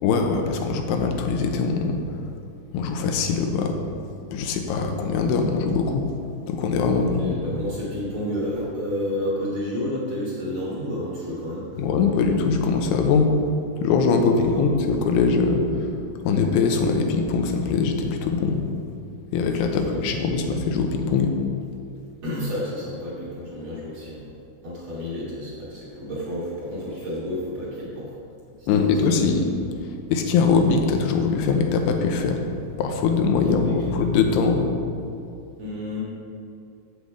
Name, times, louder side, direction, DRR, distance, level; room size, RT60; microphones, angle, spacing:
voice 1, 0.0-2.0 2.7-3.8 4.3-6.0 6.5-7.4 11.8-13.3 13.8-15.6 16.2-18.6 19.3-21.3 28.7-29.5 30.1-32.4 32.8-34.7, left 5 dB, 85° left, 4 dB, 2.7 m, -22 dB
voice 2, 6.9-11.9 14.2-14.7 19.8-20.2 22.2-24.3 24.6-28.2 28.6-29.2 33.4-34.2 35.6-36.0, left 1 dB, 50° right, -6 dB, 2.2 m, -31 dB
8.2 x 7.9 x 4.8 m, 2.5 s
omnidirectional pair, 4.7 m